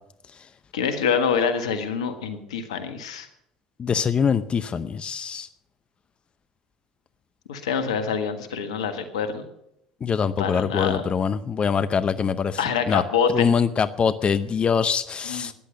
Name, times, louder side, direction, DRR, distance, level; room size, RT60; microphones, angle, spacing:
voice 1, 0.7-3.3 7.5-9.4 10.4-11.1 12.6-13.5 15.2-15.5, left 6 dB, 85° left, 8 dB, 1.5 m, -26 dB
voice 2, 3.8-5.5 10.0-13.0 13.3-15.5, left 6 dB, 35° left, 13 dB, 0.7 m, -24 dB
14.0 x 10.5 x 6.5 m, 0.80 s
hypercardioid pair, 70°, 3 cm